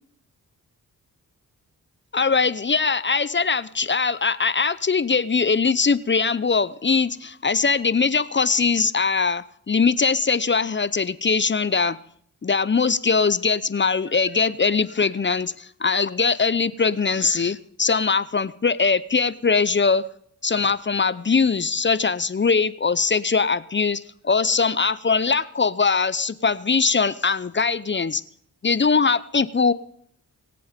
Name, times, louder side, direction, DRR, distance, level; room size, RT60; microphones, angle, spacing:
voice 1, 2.1-12.0 12.4-20.1 20.4-28.2 28.6-29.7, left 5 dB, 30° left, 17 dB, 0.7 m, -21 dB
23.0 x 7.8 x 5.2 m, 0.66 s
supercardioid pair, 45°, 38 cm